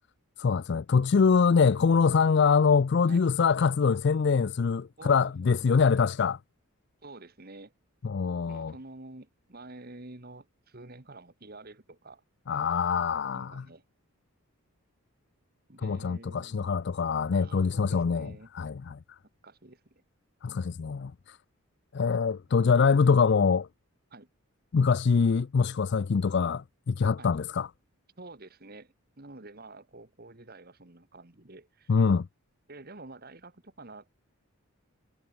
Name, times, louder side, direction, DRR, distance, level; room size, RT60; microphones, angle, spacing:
voice 1, 0.4-6.4 8.0-8.7 12.5-13.6 15.8-18.3 18.5-19.0 20.4-21.4 21.9-23.7 24.7-27.7 31.9-32.3, left 5 dB, 50° left, 0.4 m, -24 dB
voice 2, 5.0-6.1 7.0-7.7 8.5-12.2 13.3-13.8 15.7-17.0 17.3-18.5 19.4-19.8 24.1-24.3 27.2-27.3 28.2-32.0 32.7-34.1, right 2 dB, 45° right, 1.7 m, -49 dB
head